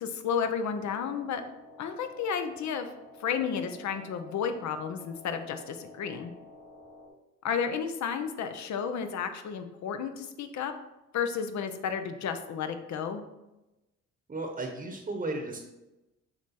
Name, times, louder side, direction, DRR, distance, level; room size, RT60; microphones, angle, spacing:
voice 1, 0.0-1.4 1.8-2.9 3.2-6.3 7.4-10.7 11.1-13.2, left 7 dB, 65° left, 8 dB, 0.7 m, -32 dB
sound 1, 0.8-7.1, left 2 dB, 45° left, 1.5 m, -52 dB
voice 2, 14.3-15.6, right 2 dB, 30° right, 2 dB, 0.9 m, -34 dB
7.0 x 3.3 x 4.2 m, 0.98 s
cardioid pair, 90°, 30 cm